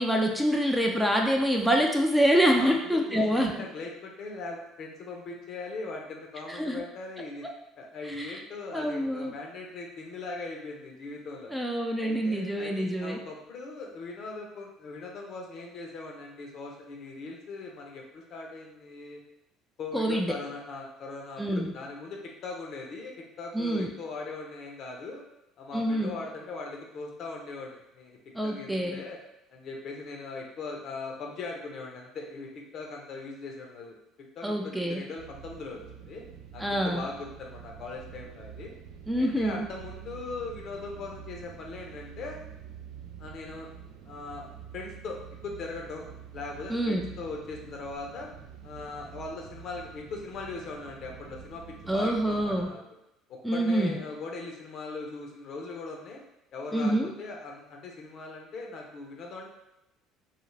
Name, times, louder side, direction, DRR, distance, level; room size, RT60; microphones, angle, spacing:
voice 1, 0.0-3.5 6.5-6.8 8.2-8.3 8.7-9.4 11.5-13.2 19.9-20.3 21.4-21.7 23.5-23.9 25.7-26.1 28.4-29.0 34.4-35.0 36.6-37.0 39.1-39.7 46.7-47.1 51.9-52.7 53.4-53.9 56.7-57.1, equal, 5° right, 1 dB, 0.4 m, -26 dB
voice 2, 2.5-7.5 7.8-11.5 12.0-19.2 19.8-25.2 25.6-28.2 28.4-29.2 29.5-34.0 34.4-36.2 36.5-38.7 39.2-42.4 43.2-43.7 44.0-44.5 44.7-46.1 46.3-48.3 48.6-51.6 51.9-52.8 53.3-56.2 56.5-59.5, left 3 dB, 55° left, 0 dB, 0.7 m, -40 dB
sound 1, 35.2-52.7, right 8 dB, 75° right, 0.3 m, -47 dB
2.4 x 2.4 x 3.1 m, 0.89 s
supercardioid pair, 80°, 0 cm